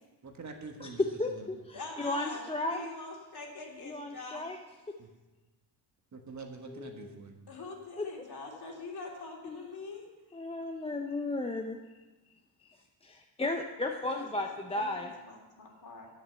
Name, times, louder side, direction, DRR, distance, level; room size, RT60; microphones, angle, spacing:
voice 1, 0.2-1.5 5.0-5.1 6.1-7.5, right 3 dB, 35° right, 3 dB, 1.5 m, -46 dB
voice 2, 1.2-2.9 3.8-4.6 6.7-7.1 8.0-8.1 9.4-9.6 10.3-11.8 13.0-15.1, left 2 dB, 15° left, 3 dB, 0.6 m, -35 dB
voice 3, 1.7-4.5 7.5-10.1 14.1-16.1, left 3 dB, 50° left, 0 dB, 3.0 m, -44 dB
9.9 x 7.9 x 6.8 m, 1.2 s
cardioid pair, 105°, 48 cm